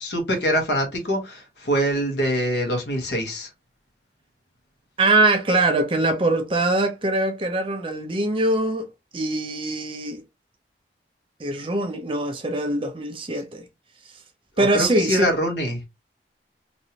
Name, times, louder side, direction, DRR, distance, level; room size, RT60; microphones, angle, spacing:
voice 1, 0.0-3.5 14.6-15.8, equal, 80° left, 1.2 m, -24 dB
voice 2, 5.0-10.2 11.4-13.6 14.6-15.3, right 2 dB, 30° right, 0.6 m, -23 dB
3.1 x 2.6 x 2.8 m
head